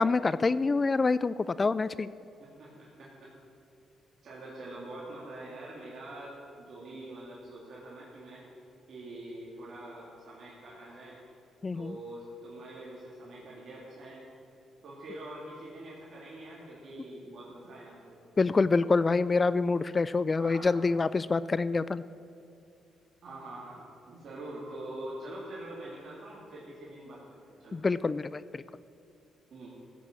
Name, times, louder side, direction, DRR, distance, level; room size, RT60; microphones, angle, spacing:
voice 1, 0.0-2.1 11.6-12.0 18.4-22.0 27.7-28.6, left 4 dB, 30° left, 17 dB, 0.3 m, -26 dB
voice 2, 2.4-3.3 4.2-8.4 8.9-11.2 11.7-14.2 14.8-18.3 20.4-20.8 23.2-27.8 29.5-29.7, right 1 dB, 55° right, -6 dB, 3.4 m, -44 dB
15.5 x 8.3 x 7.7 m, 2.5 s
cardioid pair, 90°, 0 cm